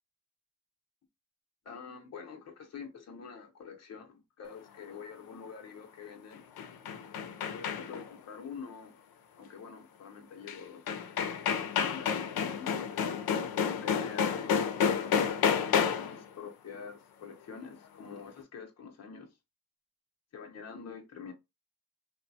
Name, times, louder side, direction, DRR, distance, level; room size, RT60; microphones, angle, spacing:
voice 1, 1.6-6.4 7.5-9.0 9.4-10.9 11.8-13.4 13.8-14.6 15.5-19.4 20.3-21.3, left 6 dB, 45° left, 0.6 m, -46 dB
sound 1, 6.3-8.1 10.5-10.6 10.9-16.2, left 7 dB, 90° left, 0.5 m, -30 dB
3.0 x 2.2 x 2.5 m
wide cardioid pair, 175°, 35 cm